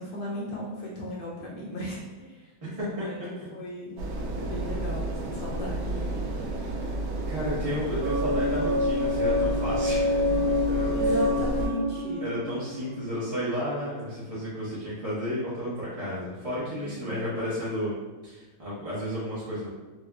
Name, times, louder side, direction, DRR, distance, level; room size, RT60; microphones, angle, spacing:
voice 1, 0.0-4.0 4.3-6.0 10.9-12.3 16.7-17.2, left 1 dB, 70° left, -4 dB, 1.2 m, -36 dB
voice 2, 2.6-3.1 6.5-6.8 7.3-10.4 10.7-10.9 12.2-17.9 18.2-19.7, equal, 35° right, -10 dB, 0.5 m, -32 dB
sound 1, 4.0-11.7, right 2 dB, 85° right, 1.4 m, -31 dB
sound 2, 8.0-13.8, left 2 dB, 70° right, 1.1 m, -27 dB
4.3 x 2.3 x 2.3 m, 1.2 s
omnidirectional pair, 2.1 m